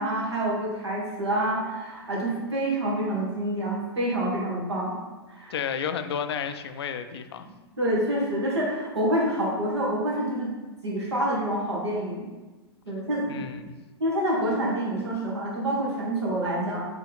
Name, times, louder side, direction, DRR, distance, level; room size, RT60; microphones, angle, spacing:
voice 1, 0.0-4.9 5.3-5.5 7.8-10.5 10.8-12.3 12.9-13.4 14.0-16.8, right 1 dB, 85° right, -4 dB, 1.5 m, -27 dB
voice 2, 5.5-7.5 13.3-13.7, left 7 dB, 70° left, 10 dB, 0.4 m, -31 dB
4.8 x 3.1 x 3.4 m, 1.2 s
hypercardioid pair, 110°, 14 cm